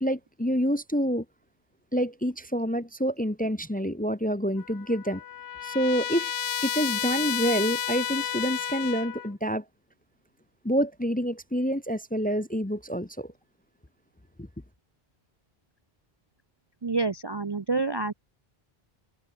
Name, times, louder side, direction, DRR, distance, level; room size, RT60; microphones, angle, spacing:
voice 1, 0.0-1.2 1.9-5.2 5.6-6.3 6.6-9.6 10.6-13.3 14.4-14.5, equal, 10° left, 0.7 m, -27 dB
Trumpet, 4.6-9.3, left 10 dB, 80° left, 1.0 m, -32 dB
voice 2, 16.8-18.1, right 3 dB, 30° right, 0.6 m, -28 dB
omnidirectional pair, 1.0 m